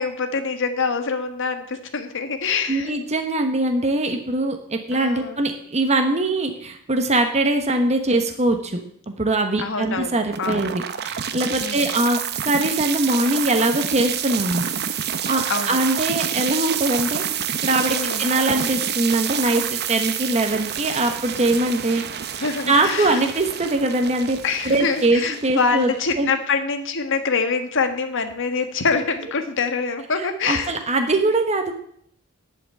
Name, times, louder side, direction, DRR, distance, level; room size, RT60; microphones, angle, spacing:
voice 1, 0.0-3.0 4.9-5.4 9.6-10.7 11.6-11.9 15.5-15.8 17.9-18.3 22.4-23.3 24.4-30.7, left 4 dB, 60° left, 7 dB, 1.5 m, -25 dB
voice 2, 2.7-8.8 9.2-12.2 12.4-14.7 15.3-17.2 17.6-22.0 22.3-24.4 24.6-25.9 26.2-26.3 30.5-31.7, right 2 dB, 30° right, 4 dB, 1.1 m, -22 dB
sound 1, 10.3-26.3, right 9 dB, 50° right, 0.8 m, -28 dB
10.5 x 5.9 x 8.3 m, 0.66 s
head